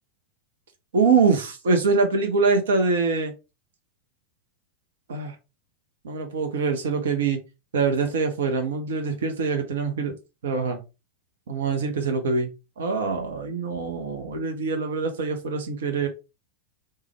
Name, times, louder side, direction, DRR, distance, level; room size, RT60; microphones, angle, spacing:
voice 1, 0.9-3.3 5.1-5.3 6.0-7.4 7.7-10.1 10.4-10.8 11.5-12.5 12.8-16.1, right 4 dB, 60° right, 5 dB, 0.6 m, -24 dB
3.3 x 2.1 x 3.3 m, 0.28 s
figure-of-eight pair, 90°, 0 cm